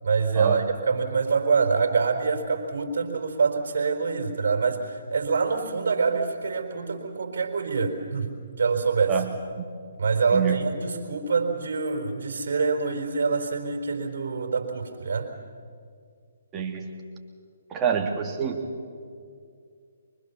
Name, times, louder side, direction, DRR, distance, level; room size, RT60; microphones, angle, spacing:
voice 1, 0.0-8.3 8.6-9.2 9.9-15.3, right 5 dB, 55° right, 3 dB, 4.4 m, -25 dB
voice 2, 16.5-16.9 17.7-18.6, right 7 dB, 20° right, 1 dB, 2.8 m, -26 dB
24.5 x 24.0 x 7.1 m, 2.2 s
figure-of-eight pair, 135°, 0 cm